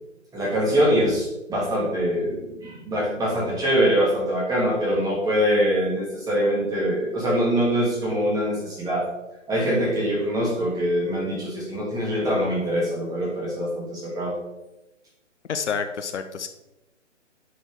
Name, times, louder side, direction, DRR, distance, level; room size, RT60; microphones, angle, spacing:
voice 1, 0.3-9.1 9.5-14.4, equal, 10° right, -5 dB, 2.7 m, -23 dB
voice 2, 15.5-16.5, left 6 dB, 60° left, 9 dB, 0.9 m, -28 dB
9.6 x 6.4 x 3.6 m, 0.96 s
figure-of-eight pair, 140°, 38 cm